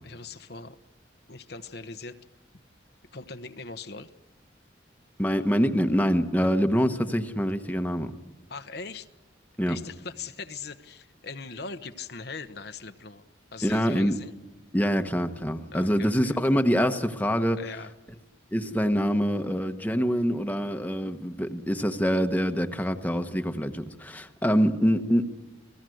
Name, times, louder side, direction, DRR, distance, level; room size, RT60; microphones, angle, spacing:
voice 1, 0.0-0.8 1.3-2.2 3.1-4.1 6.4-6.6 8.5-9.1 9.7-13.2 13.5-14.3 15.7-16.4 17.5-17.9, left 4 dB, 60° left, 8 dB, 1.0 m, -40 dB
voice 2, 5.2-8.1 9.6-9.8 13.6-14.2 14.7-17.6 18.5-25.4, equal, 10° left, 6 dB, 1.1 m, -25 dB
29.0 x 19.5 x 7.9 m, 1.2 s
head